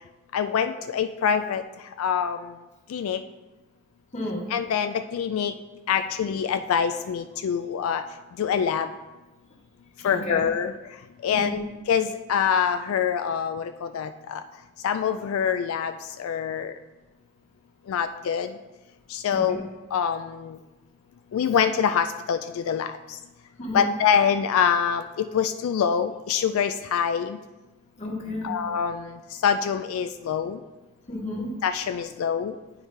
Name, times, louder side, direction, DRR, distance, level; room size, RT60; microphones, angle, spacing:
voice 1, 0.3-1.6 2.0-2.4 2.9-3.2 4.5-5.5 5.9-8.0 8.4-8.9 10.0-10.7 11.2-11.6 11.9-14.4 14.8-15.9 16.2-16.7 17.9-18.5 19.1-19.6 19.9-20.6 21.3-22.9 23.7-27.4 28.4-29.1 29.4-30.6 31.6-32.5, left 7 dB, 90° left, 8 dB, 0.3 m, -25 dB
voice 2, 4.1-4.5 10.0-10.4 11.3-11.6 19.3-19.6 23.6-23.9 28.0-28.5 31.1-31.4, left 1 dB, 35° left, -1 dB, 1.4 m, -32 dB
9.3 x 4.8 x 3.2 m, 1.1 s
head